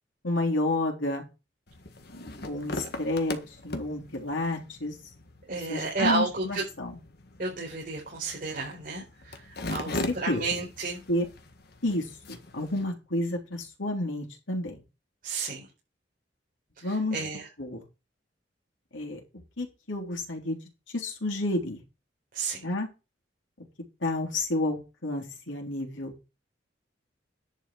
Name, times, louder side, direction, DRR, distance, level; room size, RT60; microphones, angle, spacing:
voice 1, 0.2-1.2 2.4-3.4 3.6-4.9 5.7-7.0 9.9-10.4 11.1-11.3 11.8-14.8 16.8-17.2 17.6-17.8 18.9-19.2 19.6-20.6 20.9-21.8 22.6-22.9 24.0-26.2, left 2 dB, 90° left, 0 dB, 3.5 m, -30 dB
sound 1, 1.7-12.8, left 2 dB, 60° left, 1.7 m, -40 dB
voice 2, 5.5-6.6 7.4-11.0 15.2-15.7 16.8-17.5 22.3-22.6, right 3 dB, 50° right, -4 dB, 4.6 m, -32 dB
11.0 x 6.4 x 4.8 m, 0.27 s
head